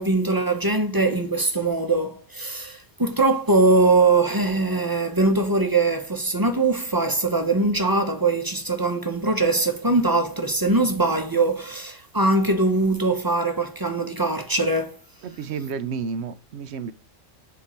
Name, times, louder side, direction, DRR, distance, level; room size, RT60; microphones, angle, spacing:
voice 1, 0.0-15.0, right 3 dB, 20° right, 0.9 m, -22 dB
voice 2, 15.2-16.9, right 5 dB, 80° right, 0.9 m, -31 dB
7.2 x 3.7 x 4.3 m
omnidirectional pair, 1.1 m